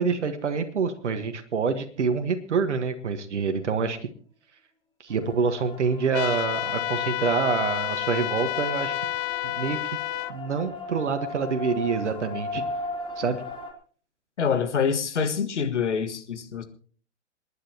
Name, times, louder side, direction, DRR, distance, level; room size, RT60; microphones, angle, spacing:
voice 1, 0.0-4.0 5.0-8.9 9.4-10.0 10.3-12.7 13.2-13.4, right 5 dB, 75° right, 7 dB, 1.6 m, -26 dB
sound 1, 5.1-13.7, left 2 dB, 15° left, 2.5 m, -37 dB
sound 2, 6.1-10.3, left 18 dB, 30° left, 0.6 m, -30 dB
voice 2, 14.4-16.6, left 6 dB, 75° left, 9 dB, 1.8 m, -26 dB
27.5 x 10.5 x 2.9 m, 0.44 s
figure-of-eight pair, 105°, 35 cm